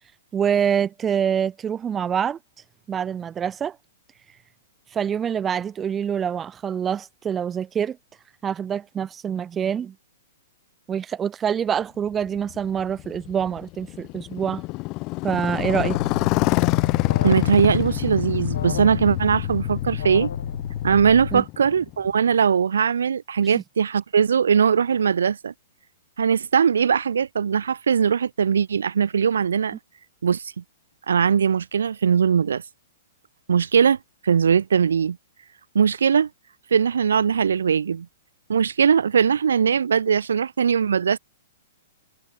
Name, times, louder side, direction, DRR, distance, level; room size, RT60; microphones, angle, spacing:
voice 1, 0.3-2.4 2.9-3.8 4.9-8.0 8.4-9.9 10.9-14.6 15.2-16.0 21.3-21.4 23.5-23.6, right 8 dB, 20° right, 0.5 m, -25 dB
Motorcycle, 12.2-22.2, left 23 dB, 35° left, 0.6 m, -27 dB
Alarm, 15.6-21.4, left 8 dB, 80° left, 1.9 m, -31 dB
voice 2, 17.2-20.3 20.8-25.5 26.2-29.8 30.2-30.6 31.1-32.6 33.5-34.0 34.2-35.2 35.7-36.3 36.7-38.1 38.5-41.2, right 7 dB, 85° right, 0.5 m, -20 dB
hypercardioid pair, 135°, 0 cm